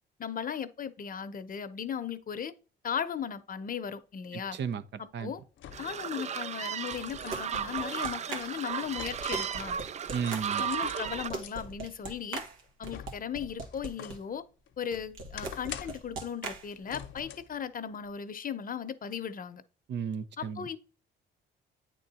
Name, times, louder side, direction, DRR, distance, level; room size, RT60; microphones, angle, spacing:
voice 1, 0.2-2.5 2.8-4.6 5.0-5.4 5.8-9.8 10.6-12.4 12.8-14.4 14.8-19.6 20.4-20.8, left 8 dB, 45° left, 0.8 m, -37 dB
sound 1, 4.2-4.3 5.6-6.1 6.5-9.7 10.0-11.5 12.1-14.3 14.7-16.2 16.9-17.6 18.0-18.1, left 10 dB, 75° left, 0.8 m, -46 dB
voice 2, 4.5-5.3 10.1-10.6 19.9-20.7, right 7 dB, 60° right, 0.7 m, -34 dB
sound 2, 5.7-11.3, right 8 dB, 35° right, 0.4 m, -35 dB
sound 3, 7.1-14.2 14.9-17.2, right 3 dB, 85° right, 1.7 m, -41 dB
8.9 x 3.8 x 4.1 m
cardioid pair, 90°, 20 cm